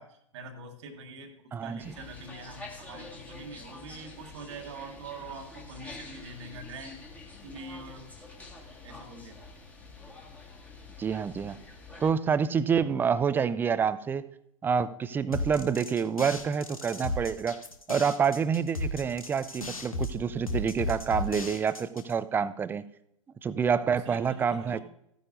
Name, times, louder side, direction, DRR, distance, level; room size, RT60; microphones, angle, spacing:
voice 1, 0.0-7.0 7.4-8.1 8.8-9.4 23.9-24.8, right 3 dB, 55° right, 4 dB, 1.4 m, -44 dB
voice 2, 1.5-2.0 11.0-11.6 12.0-14.3 14.6-17.6 17.9-22.8 23.4-24.8, right 6 dB, 10° right, 16 dB, 0.4 m, -27 dB
sound 1, 1.8-12.1, left 3 dB, 10° left, 1.7 m, -47 dB
sound 2, 15.3-22.1, left 2 dB, 85° left, 1.3 m, -35 dB
15.0 x 9.6 x 2.6 m, 0.77 s
figure-of-eight pair, 100°, 18 cm